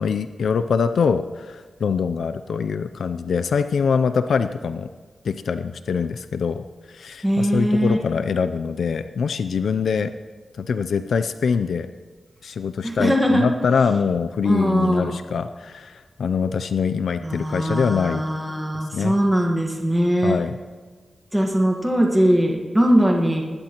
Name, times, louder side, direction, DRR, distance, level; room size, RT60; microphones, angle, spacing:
voice 1, 0.0-4.9 5.2-10.1 10.6-11.9 12.4-18.2 18.9-19.1 20.2-20.6, left 6 dB, 90° left, 10 dB, 0.4 m, -24 dB
voice 2, 7.2-8.0 12.8-13.5 14.4-15.2 17.2-20.4 21.3-23.4, equal, 5° right, 0 dB, 1.4 m, -20 dB
19.5 x 14.0 x 3.0 m, 1.5 s
wide cardioid pair, 135°, 0 cm